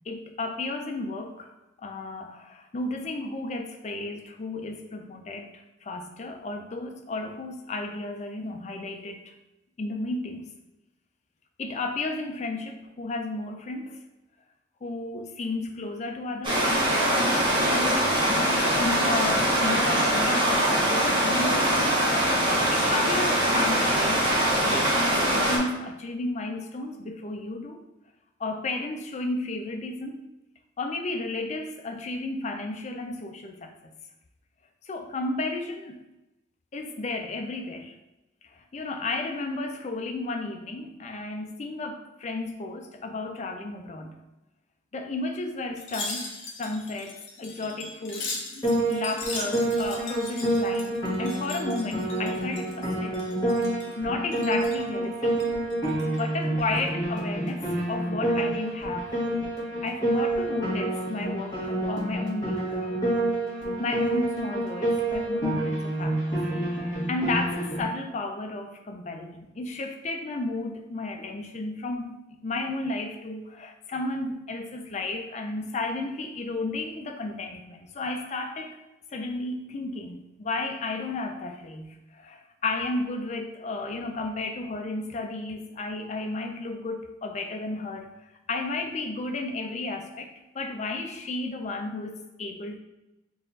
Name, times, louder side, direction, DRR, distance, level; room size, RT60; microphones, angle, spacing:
voice 1, 0.1-1.5 1.8-9.3 9.8-10.5 11.6-14.0 14.8-16.8 17.5-18.1 18.4-27.8 28.4-30.3 30.8-33.9 34.8-36.0 36.7-37.9 38.5-44.2 44.9-46.3 46.6-53.2 54.0-55.8 56.2-59.1 59.8-63.0 63.8-66.4 66.7-78.8 79.1-88.1 88.5-92.8, left 2 dB, 40° left, 4 dB, 0.4 m, -33 dB
Stream, 16.4-25.6, right 1 dB, 25° right, 0.9 m, -23 dB
Wind chime, 45.8-52.9 53.1-53.9 54.3-54.8 55.3-56.2 56.6-56.8, left 3 dB, 80° left, 0.8 m, -39 dB
Piano, 48.6-67.8, right 1 dB, 20° left, 1.5 m, -28 dB
3.9 x 2.5 x 3.9 m, 0.98 s
head